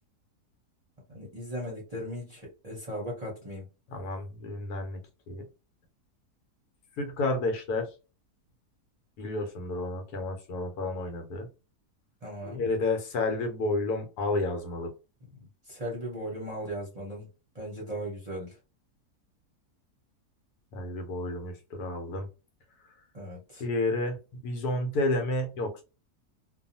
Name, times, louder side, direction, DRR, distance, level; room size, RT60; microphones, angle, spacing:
voice 1, 1.1-3.6 12.2-12.6 15.4-17.3 17.5-18.5 23.1-23.6, equal, 35° right, 0.7 m, -37 dB
voice 2, 3.9-5.0 5.3-5.4 7.0-7.9 9.2-11.5 12.4-14.9 20.7-22.3 23.6-25.8, left 2 dB, 80° left, 1.3 m, -31 dB
2.7 x 2.3 x 2.6 m
omnidirectional pair, 1.7 m